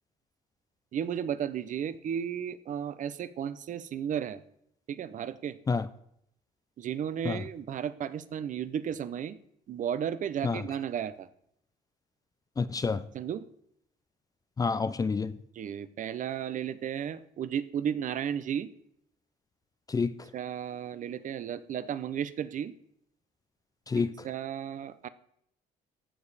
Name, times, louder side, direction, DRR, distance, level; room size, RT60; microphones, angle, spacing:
voice 1, 0.9-4.4 4.9-5.6 6.8-9.4 9.7-11.3 13.1-13.4 15.5-18.7 20.3-22.7 24.0-25.1, right 9 dB, 50° right, 0.7 m, -34 dB
voice 2, 12.6-13.0 14.6-15.3 19.9-20.1 23.9-24.1, left 4 dB, 20° left, 0.5 m, -28 dB
15.0 x 5.0 x 4.1 m
cardioid pair, 110°, 17 cm